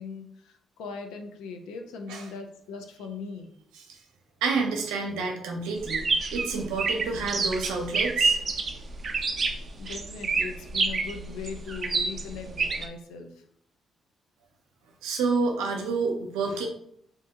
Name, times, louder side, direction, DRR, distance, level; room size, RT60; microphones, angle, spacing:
voice 1, 0.0-3.5 9.8-13.4, left 5 dB, 90° left, 5 dB, 0.5 m, -39 dB
voice 2, 4.4-8.4 15.0-16.7, right 4 dB, 90° right, 2 dB, 0.6 m, -29 dB
sound 1, 5.8-12.9, right 4 dB, 50° right, 0.5 m, -28 dB
2.7 x 2.5 x 3.6 m, 0.70 s
supercardioid pair, 60°, 0 cm